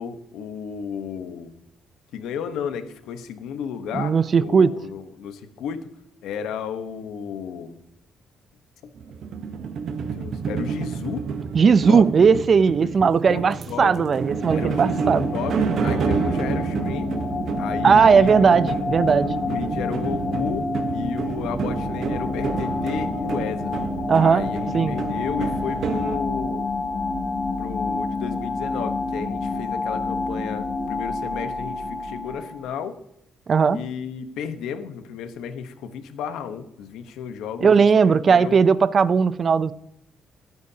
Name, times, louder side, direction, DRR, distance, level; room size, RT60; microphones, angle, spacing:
voice 1, 0.0-1.5 2.1-5.9 6.2-7.8 8.8-8.9 10.0-11.3 11.6-12.0 12.8-14.1 14.5-17.2 17.6-18.7 19.4-23.7 24.1-26.7 27.6-33.0 33.7-38.6, left 7 dB, 85° left, 1.1 m, -33 dB
voice 2, 3.9-4.7 11.5-15.3 17.8-19.3 24.1-24.5 24.7-24.9 33.5-33.8 37.6-39.7, right 6 dB, 45° right, 0.5 m, -17 dB
sound 1, 8.9-26.2, right 6 dB, 65° right, 1.1 m, -29 dB
sound 2, 13.8-32.7, left 3 dB, 50° left, 2.6 m, -29 dB
20.0 x 9.5 x 2.8 m
cardioid pair, 90°, 0 cm